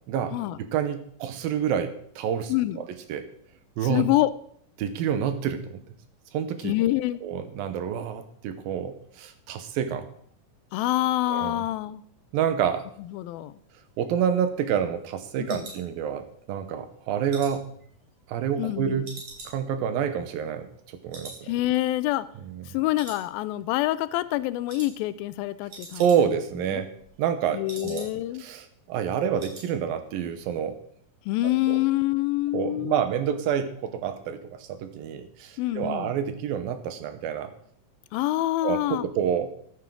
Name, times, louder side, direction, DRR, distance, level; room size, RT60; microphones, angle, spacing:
voice 1, 0.7-2.8 3.1-3.3 3.8-4.0 4.8-5.8 6.3-6.7 7.2-10.1 11.3-11.6 12.3-12.9 14.0-17.8 18.3-19.2 19.5-20.7 21.0-21.5 22.5-22.6 25.9-26.9 27.2-28.1 28.4-30.8 31.7-31.8 32.5-37.5 38.6-39.5, right 8 dB, 90° right, 9 dB, 2.8 m, -28 dB
voice 2, 2.5-2.8 3.8-4.3 6.6-7.2 10.7-12.0 13.1-13.6 15.4-15.7 18.6-19.1 21.4-22.3 22.7-26.2 26.7-26.8 27.5-28.5 31.3-33.0 35.6-36.1 38.1-39.1, left 16 dB, 90° left, 16 dB, 2.4 m, -26 dB
sound 1, 13.8-16.5 16.9-18.7 19.0-20.8 21.1-21.5 21.7-21.8 22.3-22.7 22.9-23.7 24.0-24.3 24.7-24.9 25.2-25.3 25.5-26.5 26.8-28.4 28.7-28.8 29.1-29.7 30.0-30.3 30.5-30.6, right 3 dB, 40° right, 3.7 m, -45 dB
13.5 x 9.8 x 3.8 m, 0.64 s
omnidirectional pair, 4.1 m